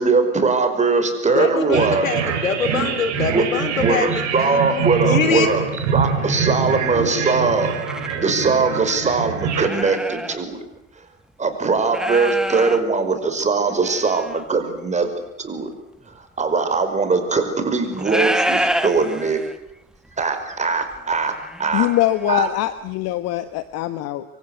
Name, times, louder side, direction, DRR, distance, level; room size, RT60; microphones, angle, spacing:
voice 1, 0.0-2.1 3.3-3.4 3.7-7.7 8.2-10.6 11.4-15.1 15.4-15.7 16.2-19.4 20.2-21.3 21.6-21.9 22.3-22.5, right 4 dB, 15° right, 8 dB, 5.3 m, -21 dB
voice 2, 1.3-5.5, left 5 dB, 75° left, 12 dB, 3.2 m, -24 dB
sound 1, 1.7-9.7, right 6 dB, 45° right, 6.1 m, -24 dB
sound 2, 4.0-4.2 4.9-5.0 5.5-5.9 7.5-8.2 8.8-8.9 9.5-10.4 10.7-10.8 11.8-12.8 13.6-14.4 16.0-16.1 17.8-19.7 20.0-20.2 20.5-22.5 22.9-23.0, right 1 dB, ahead, 1.6 m, -28 dB
voice 3, 21.7-24.2, left 14 dB, 40° left, 13 dB, 1.3 m, -22 dB
27.0 x 24.0 x 8.1 m, 0.86 s
figure-of-eight pair, 90°, 40 cm